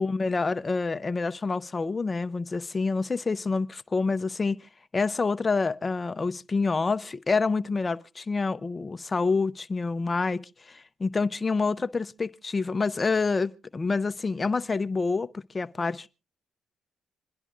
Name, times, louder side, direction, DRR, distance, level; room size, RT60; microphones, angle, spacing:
voice 1, 0.0-4.6 4.9-16.1, left 4 dB, 30° left, 0.7 m, -27 dB
27.0 x 10.5 x 2.4 m
cardioid pair, 90°, 0 cm